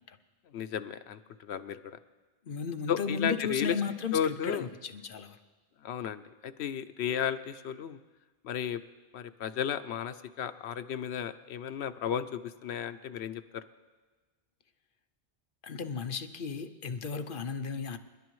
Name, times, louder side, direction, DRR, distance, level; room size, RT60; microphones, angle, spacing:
voice 1, 0.5-2.0 2.9-3.7 4.1-4.7 5.8-8.0 8.4-8.8 9.1-13.6, left 8 dB, 90° left, 11 dB, 0.9 m, -34 dB
voice 2, 2.4-5.4 15.6-18.0, left 5 dB, 60° left, 8 dB, 0.8 m, -35 dB
28.5 x 11.0 x 3.1 m, 1.3 s
omnidirectional pair, 1.1 m